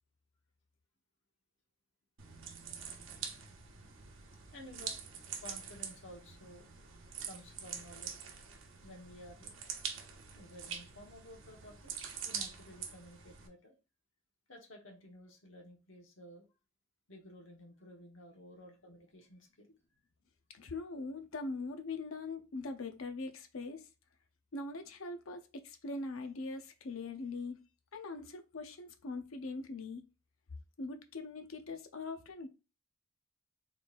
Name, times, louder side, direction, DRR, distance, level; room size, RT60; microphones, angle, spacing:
sound 1, 2.2-13.5, right 7 dB, 70° right, 0.8 m, -45 dB
voice 1, 4.5-5.0 5.4-6.7 7.3-8.2 8.8-9.5 10.3-11.9 12.2-13.7 14.5-16.5 17.1-19.7, left 1 dB, 70° left, 1.2 m, -53 dB
voice 2, 20.5-23.9 24.5-27.6 27.9-30.0 30.8-32.5, left 3 dB, 85° left, 0.7 m, -42 dB
4.1 x 3.9 x 2.5 m
head